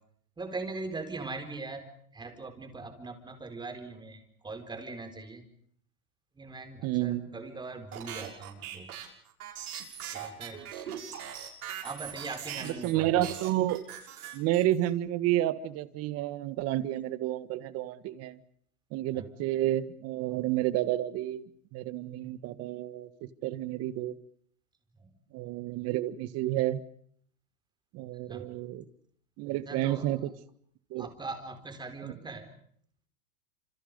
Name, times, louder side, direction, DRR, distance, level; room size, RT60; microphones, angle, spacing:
voice 1, 0.4-5.5 6.3-9.0 10.1-10.7 11.8-13.4 19.1-19.3 25.0-25.1 28.1-28.5 29.7-30.2 31.0-32.5, right 3 dB, 10° right, 6 dB, 4.3 m, -41 dB
voice 2, 6.8-7.3 12.6-13.8 14.3-18.4 18.9-21.4 21.7-24.1 25.3-26.8 27.9-28.8 29.4-30.2 30.9-31.1 32.0-32.1, right 14 dB, 35° right, 14 dB, 1.7 m, -30 dB
sound 1, 7.9-12.9 13.2-14.9, right 9 dB, 70° right, 6.7 m, -40 dB
28.0 x 27.5 x 5.4 m, 0.63 s
hypercardioid pair, 135°, 45 cm